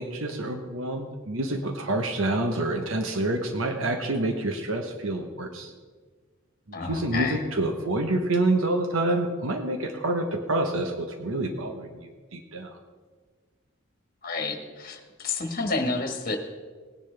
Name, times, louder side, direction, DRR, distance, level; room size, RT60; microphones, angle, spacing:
voice 1, 0.0-5.7 6.7-12.8, right 2 dB, 75° right, 5 dB, 1.0 m, -27 dB
voice 2, 6.7-7.4 14.2-16.4, left 3 dB, 45° left, 4 dB, 1.5 m, -30 dB
18.0 x 10.5 x 3.4 m, 1.5 s
head